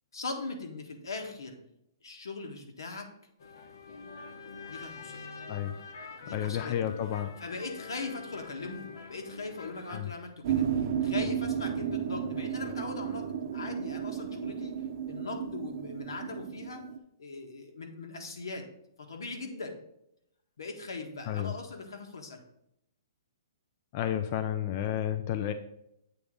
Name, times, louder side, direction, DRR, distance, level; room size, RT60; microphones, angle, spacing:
voice 1, 0.1-1.6 2.0-3.1 4.7-5.2 6.2-6.9 7.4-14.7 15.1-16.9 17.2-18.7 19.0-19.8 20.6-22.4, left 3 dB, 90° left, 3 dB, 1.5 m, -40 dB
sound 1, 3.4-10.0, left 4 dB, 70° left, 1.0 m, -45 dB
voice 2, 6.3-7.3 9.9-10.1 21.3-21.5 23.9-25.5, left 10 dB, 30° left, 8 dB, 0.4 m, -31 dB
sound 2, 10.4-17.0, right 8 dB, 45° right, 0.6 m, -33 dB
8.0 x 3.6 x 5.1 m, 0.79 s
hypercardioid pair, 165°, 2 cm